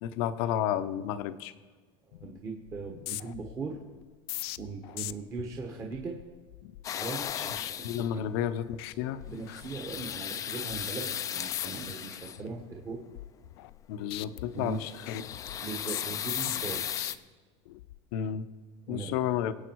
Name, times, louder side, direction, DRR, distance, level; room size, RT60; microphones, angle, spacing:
voice 1, 0.0-1.5 7.3-7.5 7.8-9.2 13.9-15.2 18.1-18.5 18.9-19.5, left 10 dB, 70° left, 11 dB, 0.9 m, -31 dB
sound 1, 2.1-2.4 2.7-8.4 8.7-8.9 9.2-10.2 10.6-10.8 11.4-11.9 12.3-13.8 14.1-17.1 17.7-18.0, left 17 dB, 90° left, 0.5 m, -42 dB
voice 2, 2.1-3.8 4.6-6.2 6.9-8.2 9.2-13.0 14.5-14.8 15.6-16.8 18.9-19.1, right 4 dB, 25° right, 1 dB, 1.4 m, -39 dB
sound 2, 6.8-8.2 9.3-12.5 14.6-17.2, left 9 dB, 25° left, 0.5 m, -36 dB
24.0 x 8.5 x 4.7 m, 1.5 s
cardioid pair, 160°, 13 cm